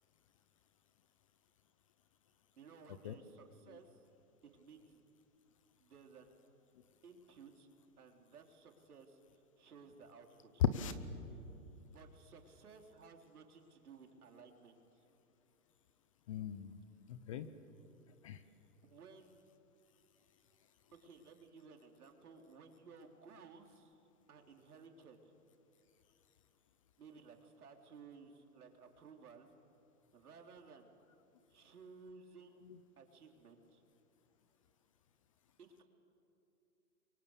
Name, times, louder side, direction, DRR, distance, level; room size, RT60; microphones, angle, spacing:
voice 1, 2.6-4.0 4.4-5.1 5.8-6.3 7.0-7.7 8.0-9.2 9.6-10.6 11.9-15.1 18.8-19.4 20.9-24.0 24.3-25.4 27.0-29.5 30.1-30.9 31.5-32.5 33.0-33.8 35.6-35.8, right 5 dB, 75° right, 3 dB, 3.9 m, -58 dB
voice 2, 10.6-11.0 16.3-16.8 17.1-17.6 18.2-18.4 32.6-32.8, left 9 dB, 25° left, 12 dB, 0.6 m, -37 dB
29.5 x 23.5 x 8.3 m, 2.8 s
hypercardioid pair, 155°, 45 cm